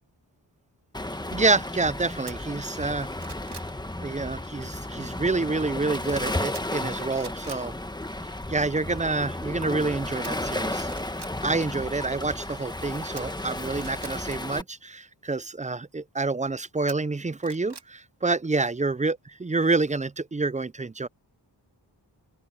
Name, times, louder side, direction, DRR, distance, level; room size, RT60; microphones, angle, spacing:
Waves surf, 0.9-14.6, left 1 dB, 10° left, 1.3 m, -33 dB
voice 1, 1.3-3.1 4.0-7.7 8.5-10.9 11.4-21.1, right 3 dB, 15° right, 0.5 m, -28 dB
sound 1, 2.3-2.4 2.9-3.7 6.5-6.9 7.1-7.6 10.2-10.3 10.8-11.3 13.2-14.1 16.9-17.9 18.3-18.4, right 5 dB, 65° right, 2.8 m, -44 dB
open air
wide cardioid pair, 70°, 43 cm